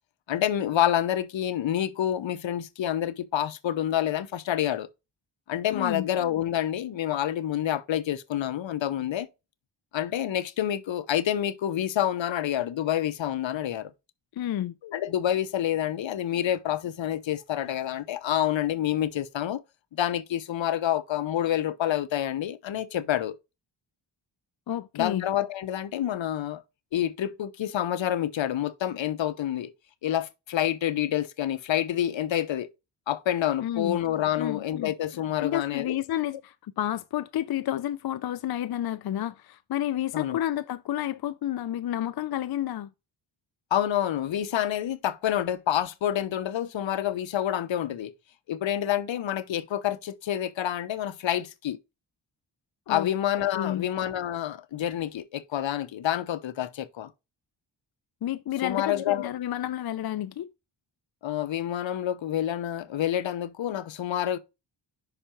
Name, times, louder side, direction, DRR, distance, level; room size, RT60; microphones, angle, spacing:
voice 1, 0.3-4.9 5.5-9.3 9.9-13.9 14.8-19.6 19.9-23.4 24.9-26.6 26.9-29.7 30.0-32.7 33.1-36.0 40.1-40.4 43.7-48.1 48.5-51.8 52.9-57.1 58.6-59.3 61.2-64.4, left 11 dB, 70° left, 0.8 m, -28 dB
voice 2, 5.7-6.1 14.3-14.8 24.7-25.2 33.6-34.0 34.4-34.9 35.4-42.9 52.9-53.1 53.6-53.9 58.2-60.5, left 12 dB, 55° left, 0.5 m, -30 dB
5.8 x 4.9 x 4.5 m
cardioid pair, 65°, 47 cm